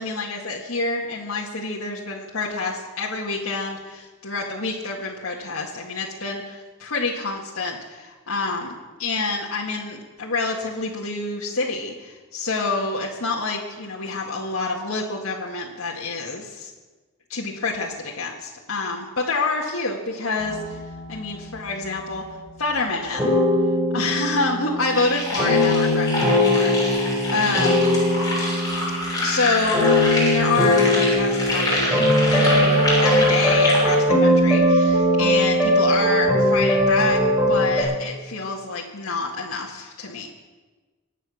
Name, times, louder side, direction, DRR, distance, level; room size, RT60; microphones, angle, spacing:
voice 1, 0.0-16.7 17.3-20.8 21.1-22.2 22.6-23.3 23.9-27.9 29.1-32.0 32.3-37.2 37.5-40.3, left 3 dB, 80° left, -4 dB, 1.9 m, -27 dB
sound 1, 20.4-21.9 23.1-37.8, left 1 dB, 5° right, 6.2 m, -20 dB
sound 2, 24.9-34.0, left 1 dB, 20° left, 6.6 m, -26 dB
24.5 x 9.2 x 6.4 m, 1.3 s
head